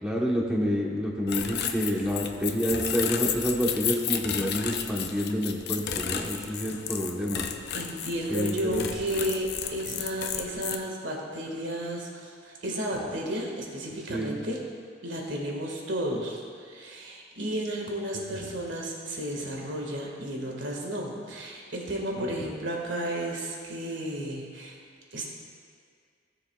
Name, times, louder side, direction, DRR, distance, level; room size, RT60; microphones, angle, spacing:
voice 1, 0.0-7.4 8.3-8.9 14.1-14.4 22.2-22.3, equal, 5° right, -2 dB, 1.1 m, -28 dB
sound 1, 1.3-10.8, left 8 dB, 60° left, 0.6 m, -33 dB
voice 2, 6.2-6.5 7.7-14.6 15.0-24.8 25.1-25.3, right 1 dB, 85° right, -1 dB, 1.8 m, -33 dB
17.0 x 7.0 x 2.4 m, 2.1 s
head